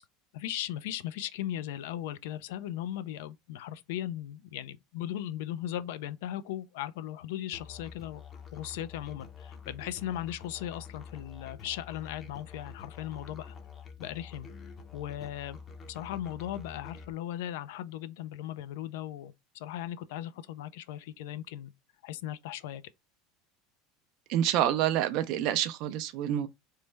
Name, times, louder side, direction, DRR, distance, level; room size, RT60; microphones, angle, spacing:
voice 1, 0.3-8.2 8.5-13.6 14.0-14.5 14.9-15.6 15.9-21.7 22.0-22.8, left 12 dB, 80° left, 0.3 m, -37 dB
Musical instrument, 7.5-17.1, left 6 dB, 30° left, 0.6 m, -47 dB
voice 2, 24.3-26.5, right 11 dB, 65° right, 0.3 m, -27 dB
3.1 x 2.0 x 3.2 m
supercardioid pair, 110°, 0 cm